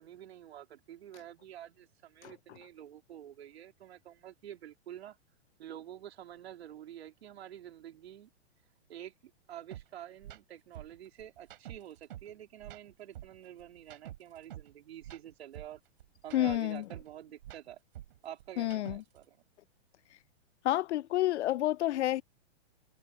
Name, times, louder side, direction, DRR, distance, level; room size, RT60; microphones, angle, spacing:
voice 1, 0.0-5.2 5.6-8.3 8.9-15.8 16.2-17.8 18.2-19.4, right 11 dB, 70° right, 3.4 m, -48 dB
sound 1, 9.7-9.8 10.2-10.4 10.7-12.3 12.6-14.7 15.0-17.1 17.4-19.2, right 13 dB, 50° right, 6.6 m, -48 dB
voice 2, 16.3-16.8 18.6-19.0 20.6-22.2, left 14 dB, 90° left, 0.5 m, -29 dB
hypercardioid pair, 170°, 33 cm